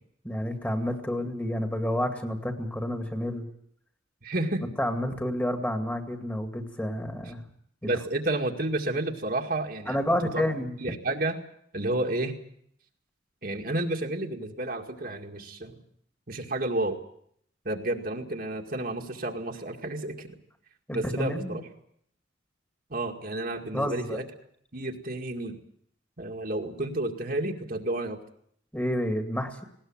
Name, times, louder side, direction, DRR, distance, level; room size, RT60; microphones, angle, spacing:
voice 1, 0.2-3.5 4.8-7.5 7.8-7.9 9.9-10.8 20.9-21.6 23.7-24.2 28.7-29.6, equal, 10° left, 5 dB, 2.2 m, -29 dB
voice 2, 4.2-4.6 7.8-10.0 10.3-10.4 10.8-11.4 11.7-12.3 13.4-15.8 16.3-17.0 17.7-20.3 20.9-21.6 22.9-24.2 24.7-25.6 26.2-28.2, right 2 dB, 50° right, 2 dB, 2.1 m, -31 dB
19.5 x 18.5 x 8.9 m, 0.67 s
head